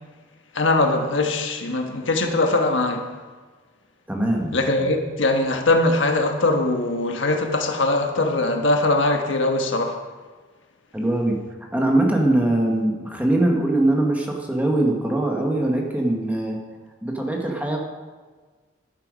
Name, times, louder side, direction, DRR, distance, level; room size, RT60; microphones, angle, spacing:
voice 1, 0.5-3.1 4.5-10.0, left 2 dB, 90° left, 1.4 m, -21 dB
voice 2, 4.1-4.6 10.9-11.4 11.7-16.6 17.0-17.8, right 1 dB, 10° right, 1.5 m, -22 dB
11.0 x 10.5 x 5.2 m
head